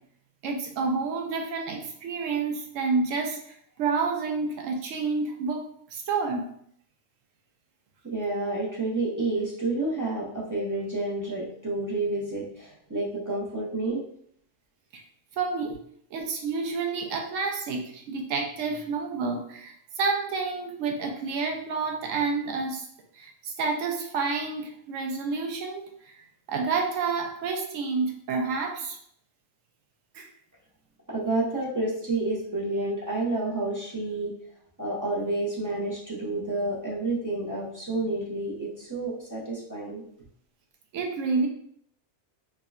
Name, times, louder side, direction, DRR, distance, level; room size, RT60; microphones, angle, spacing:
voice 1, 0.4-5.7 5.9-6.4 14.9-15.0 15.4-15.8 16.1-22.9 23.1-29.0 30.1-30.3 40.9-41.5, right 4 dB, 75° right, 2 dB, 0.9 m, -29 dB
voice 2, 8.0-14.0 31.1-34.3 34.8-40.0, right 2 dB, 25° right, -6 dB, 0.4 m, -29 dB
3.5 x 2.2 x 2.3 m, 0.66 s
omnidirectional pair, 1.4 m